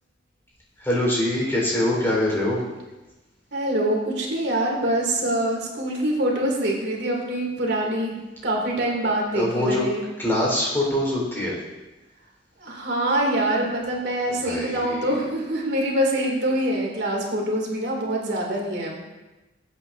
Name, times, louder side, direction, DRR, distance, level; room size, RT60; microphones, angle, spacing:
voice 1, 0.8-2.6 9.3-9.8 10.2-11.6 14.4-15.0, left 1 dB, 15° left, -4 dB, 4.3 m, -23 dB
voice 2, 3.5-8.2 8.4-10.0 12.6-19.0, right 1 dB, 65° right, -2 dB, 2.7 m, -25 dB
20.5 x 8.8 x 2.7 m, 1.1 s
head